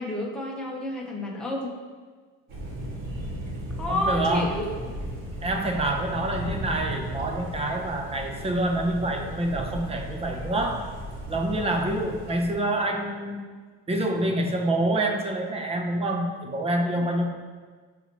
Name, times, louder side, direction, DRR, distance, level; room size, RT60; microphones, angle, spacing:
voice 1, 0.0-1.7 3.8-4.8 17.0-17.1, left 1 dB, 5° left, -3 dB, 1.0 m, -30 dB
Thunder, 2.5-12.5, equal, 70° right, 2.1 m, -35 dB
voice 2, 3.9-4.5 5.4-10.9 11.3-13.4 13.9-17.3, right 1 dB, 20° right, 3 dB, 0.7 m, -27 dB
11.5 x 4.2 x 3.1 m, 1.5 s
cardioid pair, 155°, 30 cm